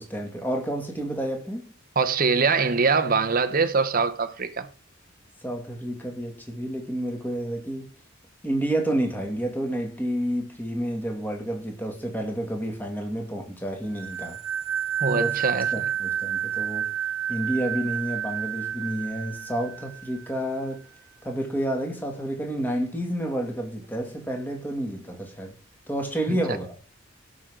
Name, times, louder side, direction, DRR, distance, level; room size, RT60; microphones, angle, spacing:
voice 1, 0.0-1.7 5.4-7.9 8.4-14.4 15.1-16.9 17.3-20.8 21.2-25.6 25.9-26.8, right 1 dB, 10° left, 2.2 m, -30 dB
voice 2, 2.0-4.7 15.0-15.7 26.3-26.4, right 4 dB, 45° right, 0.8 m, -23 dB
sound 1, 14.0-20.4, right 9 dB, 80° right, 1.2 m, -30 dB
17.0 x 6.3 x 3.7 m
head